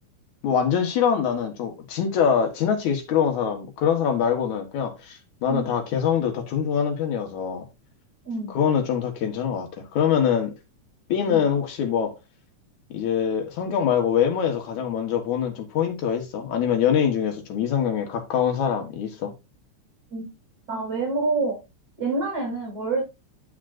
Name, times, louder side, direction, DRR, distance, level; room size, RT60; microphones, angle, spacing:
voice 1, 0.4-7.6 8.5-10.5 11.1-12.1 12.9-19.3, left 8 dB, 75° left, 2.9 m, -24 dB
voice 2, 8.2-8.6 11.3-11.5 20.1-20.3 20.7-21.6 22.0-23.0, right 3 dB, 30° right, 4.3 m, -27 dB
8.9 x 8.5 x 2.6 m
omnidirectional pair, 3.4 m